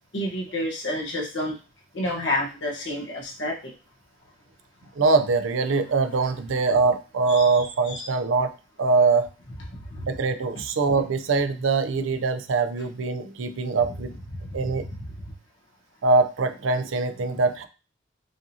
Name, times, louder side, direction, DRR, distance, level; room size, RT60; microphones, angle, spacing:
voice 1, 0.1-1.6 1.9-3.7 7.3-8.1 9.7-10.0 15.0-15.1, left 1 dB, 70° left, -2 dB, 1.1 m, -30 dB
voice 2, 5.0-8.5 8.8-9.3 10.0-14.2 14.5-14.9 16.0-17.7, right 4 dB, 85° right, 9 dB, 0.5 m, -23 dB
4.9 x 2.7 x 2.7 m, 0.33 s
head